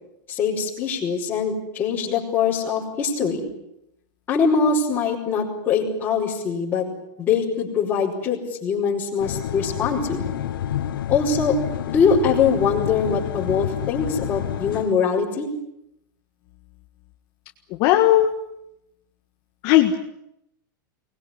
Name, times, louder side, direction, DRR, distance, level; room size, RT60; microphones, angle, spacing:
voice 1, 0.3-3.5 4.3-6.9 7.2-10.2 11.1-11.6 11.9-15.5, left 5 dB, 20° left, -9 dB, 5.3 m, -22 dB
sound 1, 9.2-14.9, left 11 dB, 90° left, 1.3 m, -29 dB
voice 2, 17.8-18.3 19.6-19.9, left 13 dB, 40° left, 4 dB, 1.7 m, -16 dB
23.5 x 20.5 x 10.0 m, 0.82 s
supercardioid pair, 165°, 11 cm